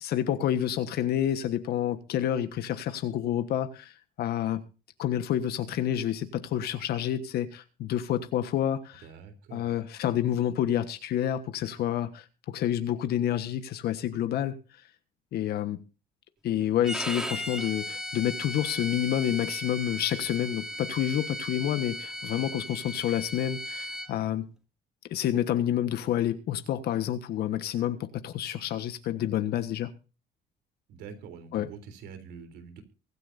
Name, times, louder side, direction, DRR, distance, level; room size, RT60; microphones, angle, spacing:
voice 1, 0.0-3.9 4.2-4.6 5.0-9.0 9.5-14.6 15.3-15.8 16.4-24.4 25.1-29.9 31.5-31.7, left 11 dB, 70° left, 1.4 m, -29 dB
voice 2, 9.0-9.8 30.9-32.8, right 6 dB, 85° right, 3.6 m, -45 dB
Bowed string instrument, 16.8-24.1, equal, 5° right, 2.6 m, -36 dB
23.5 x 10.0 x 2.7 m
cardioid pair, 110°, 17 cm